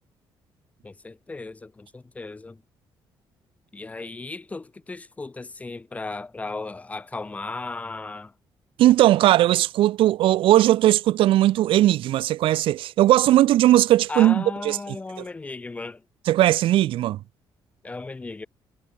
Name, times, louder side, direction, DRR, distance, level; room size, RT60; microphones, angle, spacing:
voice 1, 0.8-2.6 3.7-8.3 14.1-16.0 17.8-18.5, left 3 dB, 15° left, 2.3 m, -35 dB
voice 2, 8.8-14.8 16.3-17.2, right 14 dB, 80° right, 0.7 m, -18 dB
cardioid pair, 165°, 9 cm